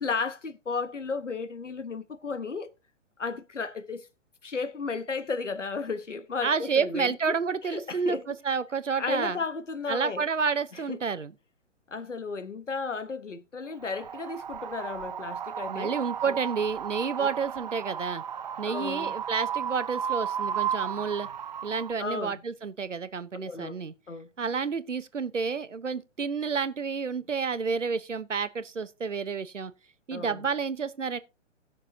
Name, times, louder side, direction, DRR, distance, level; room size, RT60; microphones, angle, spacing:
voice 1, 0.0-2.7 3.2-4.1 4.4-7.3 7.6-8.2 9.0-10.2 10.9-11.0 11.9-15.9 16.3-16.4 17.2-17.3 18.6-19.1 22.0-22.3 23.3-23.8 24.1-24.3 30.1-30.5, left 4 dB, 75° left, 1.4 m, -34 dB
voice 2, 6.4-9.4 9.9-11.3 15.7-18.2 18.6-21.3 21.6-23.9 24.4-29.7 30.1-31.2, right 5 dB, 75° right, 1.1 m, -30 dB
Wind, 13.8-21.9, right 8 dB, 35° right, 0.4 m, -34 dB
18.5 x 6.7 x 2.8 m
figure-of-eight pair, 125°, 37 cm